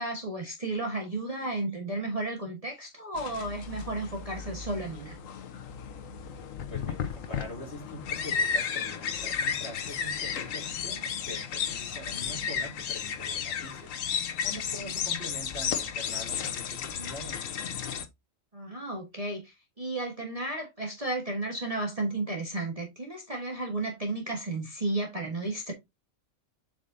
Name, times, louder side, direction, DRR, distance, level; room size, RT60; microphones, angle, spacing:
voice 1, 0.0-5.2 18.5-25.7, right 2 dB, 30° right, 1.3 m, -33 dB
sound 1, 3.2-18.1, left 7 dB, 80° left, 1.2 m, -33 dB
voice 2, 6.7-14.0 14.4-17.4, equal, 55° left, 3.2 m, -43 dB
7.6 x 4.9 x 2.6 m
omnidirectional pair, 1.4 m